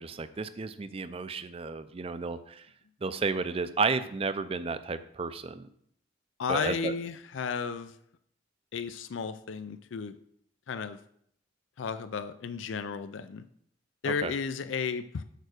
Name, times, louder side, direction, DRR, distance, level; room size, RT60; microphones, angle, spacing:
voice 1, 0.0-2.7 3.0-5.7 6.5-6.9 14.0-14.3, right 4 dB, 30° right, 12 dB, 0.4 m, -32 dB
voice 2, 6.4-7.9 8.7-10.1 10.7-11.0 11.8-13.4 14.0-15.2, left 5 dB, 90° left, 11 dB, 0.4 m, -33 dB
6.6 x 4.7 x 6.4 m, 0.68 s
head